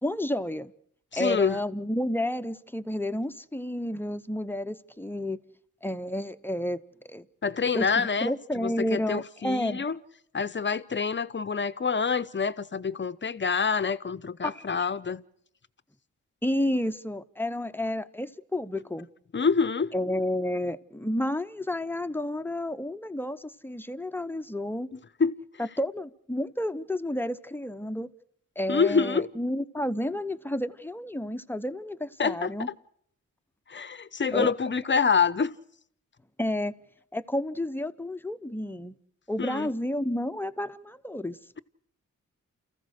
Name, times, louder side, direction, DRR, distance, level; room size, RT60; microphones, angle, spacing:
voice 1, 0.0-0.7 1.1-5.4 5.8-6.8 7.0-7.3 7.7-9.8 14.4-14.7 16.4-19.1 19.9-24.9 25.6-28.1 28.6-32.7 34.3-34.5 36.4-36.7 37.1-39.0 39.3-41.4, left 1 dB, 5° left, 0.8 m, -31 dB
voice 2, 1.1-1.6 7.4-10.0 10.3-15.2 19.3-19.9 25.2-25.3 28.7-29.3 32.2-32.5 33.7-35.5 39.4-39.7, left 5 dB, 35° left, 0.8 m, -26 dB
29.0 x 14.5 x 6.5 m
cardioid pair, 60°, 33 cm